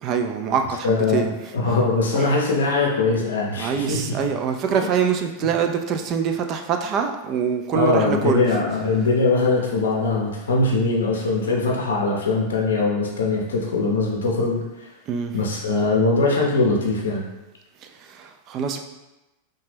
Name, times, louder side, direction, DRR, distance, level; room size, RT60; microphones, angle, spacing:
voice 1, 0.0-1.8 2.1-2.4 3.6-9.0 15.1-15.5 17.8-18.8, right 7 dB, 45° right, 5 dB, 0.3 m, -25 dB
voice 2, 0.8-4.0 7.7-14.9 15.3-17.2, left 3 dB, 80° left, -1 dB, 0.5 m, -21 dB
2.8 x 2.2 x 3.2 m, 1.0 s
hypercardioid pair, 100°, 0 cm